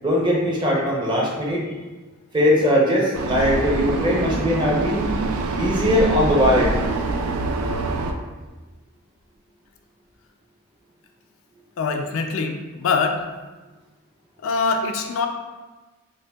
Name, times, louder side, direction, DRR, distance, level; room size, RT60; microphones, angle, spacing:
voice 1, 0.0-1.6 2.3-5.1 5.6-6.7, equal, 20° right, -3 dB, 0.6 m, -20 dB
Vehicle, 3.1-8.1, right 3 dB, 90° right, 0.4 m, -25 dB
voice 2, 11.8-13.2 14.4-15.3, left 4 dB, 70° left, 5 dB, 0.3 m, -23 dB
5.1 x 2.2 x 2.3 m, 1.2 s
head